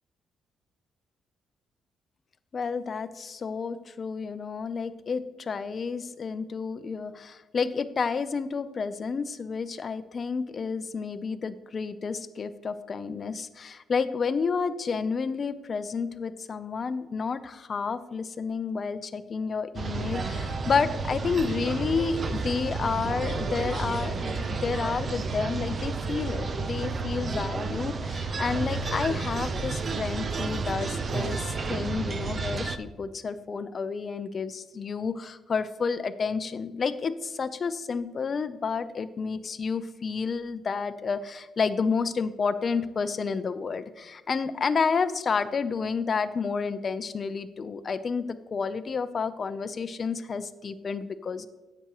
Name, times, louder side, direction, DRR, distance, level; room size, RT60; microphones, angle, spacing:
voice 1, 2.5-48.2 48.5-51.5, left 5 dB, 45° left, 13 dB, 0.5 m, -30 dB
sound 1, 19.7-32.8, right 4 dB, 40° right, 0.6 m, -31 dB
10.0 x 7.9 x 3.0 m, 1.1 s
cardioid pair, 90°, 0 cm